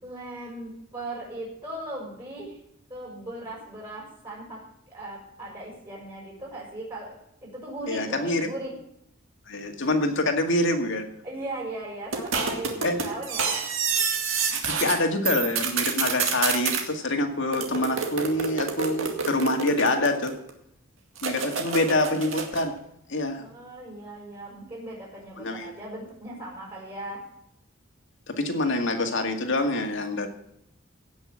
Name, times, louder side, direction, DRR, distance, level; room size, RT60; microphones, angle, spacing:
voice 1, 0.0-2.6 2.9-4.6 4.9-7.2 7.5-8.7 11.2-13.6 21.3-21.8 23.3-27.2, right 1 dB, 25° right, -4 dB, 5.8 m, -38 dB
voice 2, 7.9-8.5 9.5-11.1 12.8-13.0 14.7-20.3 21.2-22.8 23.1-23.4 25.4-25.7 28.4-30.3, left 2 dB, 65° left, 5 dB, 2.1 m, -26 dB
sound 1, 12.1-15.0 15.2-16.8 17.5-20.5 21.2-22.7, right 6 dB, 75° right, 2.2 m, -28 dB
17.0 x 6.3 x 7.4 m, 0.75 s
head